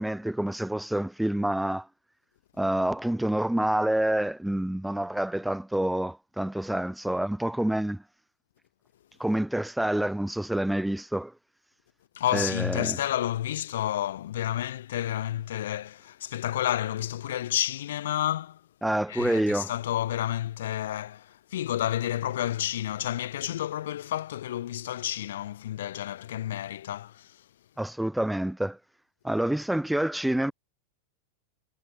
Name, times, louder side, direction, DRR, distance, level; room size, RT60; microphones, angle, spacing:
voice 1, 0.0-1.9 2.6-8.0 9.2-11.3 12.3-13.0 18.8-19.7 27.8-28.8 29.2-30.5, right 1 dB, 5° right, 0.3 m, -27 dB
voice 2, 12.1-18.6 19.1-27.4, left 12 dB, 60° left, 0.7 m, -30 dB
figure-of-eight pair, 90°, 0 cm